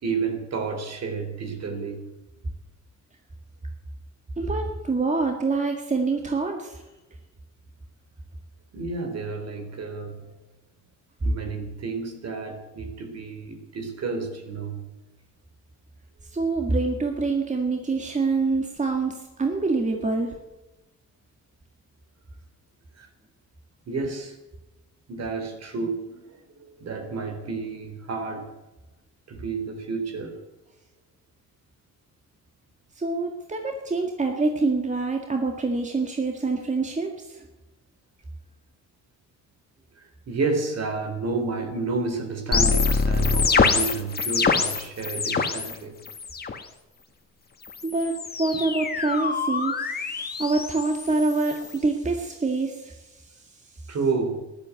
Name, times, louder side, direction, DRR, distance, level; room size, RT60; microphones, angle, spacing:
voice 1, 0.0-2.0 8.7-10.2 11.2-14.8 23.0-23.1 23.9-24.4 25.1-28.5 29.3-30.4 40.0-46.0 53.9-54.4, right 4 dB, 55° right, 6 dB, 3.8 m, -30 dB
voice 2, 4.4-6.8 16.3-20.4 33.0-37.4 47.8-53.4, right 3 dB, 25° right, 3 dB, 1.9 m, -26 dB
sound 1, 42.5-45.7 46.0-46.6 47.6-51.8, left 4 dB, 30° left, 1.6 m, -25 dB
13.5 x 11.5 x 8.3 m, 1.1 s
cardioid pair, 90°, 30 cm